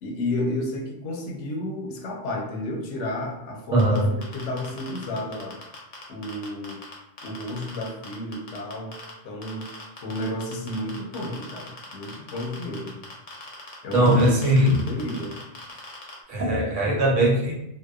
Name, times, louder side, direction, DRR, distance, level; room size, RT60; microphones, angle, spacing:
voice 1, 0.0-5.6 6.1-6.8 7.2-8.9 9.2-9.7 10.0-13.0 13.8-14.3 14.7-15.4 16.7-16.8, left 1 dB, 80° left, 1 dB, 0.9 m, -32 dB
voice 2, 3.7-4.0 13.9-14.8 16.3-17.5, right 1 dB, 85° right, -2 dB, 1.1 m, -20 dB
sound 1, 3.8-6.9 7.2-9.1 9.4-16.1, left 3 dB, 50° left, 0.7 m, -40 dB
2.8 x 2.1 x 2.2 m, 0.84 s
omnidirectional pair, 1.2 m